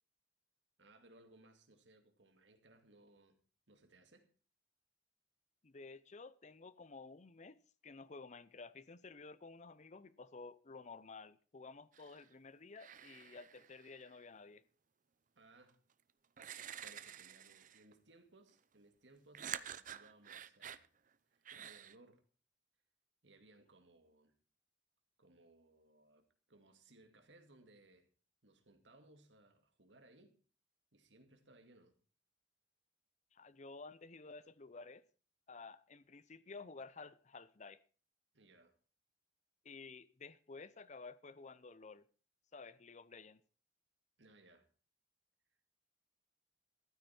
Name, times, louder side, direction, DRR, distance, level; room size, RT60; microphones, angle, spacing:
voice 1, 0.8-3.4 3.7-4.3 15.4-15.8 16.8-20.9 21.3-22.2 23.2-24.3 25.2-28.1 28.4-30.3 30.9-32.0 38.3-38.8 44.2-44.7, right 2 dB, 75° right, 2.3 m, -64 dB
voice 2, 5.6-7.6 7.8-14.6 33.3-35.0 35.5-37.8 39.6-42.1 42.5-43.4, left 4 dB, 40° left, 0.6 m, -53 dB
sound 1, 11.9-12.3 12.8-14.2 15.7-15.8 16.4-17.9 19.3-20.9 21.5-21.9, right 9 dB, 45° right, 0.6 m, -49 dB
14.5 x 12.5 x 4.4 m
head